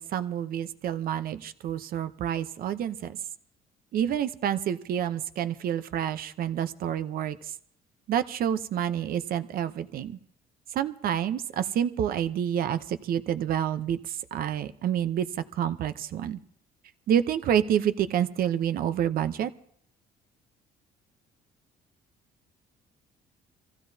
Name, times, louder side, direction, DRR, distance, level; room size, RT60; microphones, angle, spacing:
voice 1, 0.0-3.2 3.9-7.5 8.1-10.2 10.7-15.3 15.6-16.4 17.1-19.5, right 9 dB, 60° right, 12 dB, 0.8 m, -28 dB
25.5 x 15.0 x 2.8 m, 0.66 s
cardioid pair, 110°, 17 cm